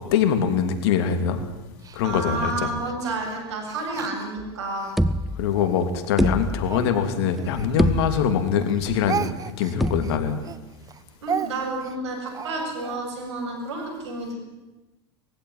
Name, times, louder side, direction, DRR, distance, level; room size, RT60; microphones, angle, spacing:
voice 1, 0.1-1.4 1.9-2.7 5.4-9.2 9.6-10.4, left 7 dB, 70° left, 7 dB, 3.1 m, -23 dB
Speech, 1.8-4.9 5.5-8.3 8.6-13.0, right 7 dB, 25° right, 1.0 m, -35 dB
voice 2, 2.0-5.0 11.2-14.4, right 2 dB, 85° right, 3 dB, 7.8 m, -30 dB
sound 1, 4.4-4.5 5.0-5.7 6.2-7.0 7.4-7.5 7.8-8.6 9.8-10.5, equal, ahead, 0.8 m, -25 dB
21.5 x 16.0 x 9.8 m, 1.1 s
hypercardioid pair, 105°, 14 cm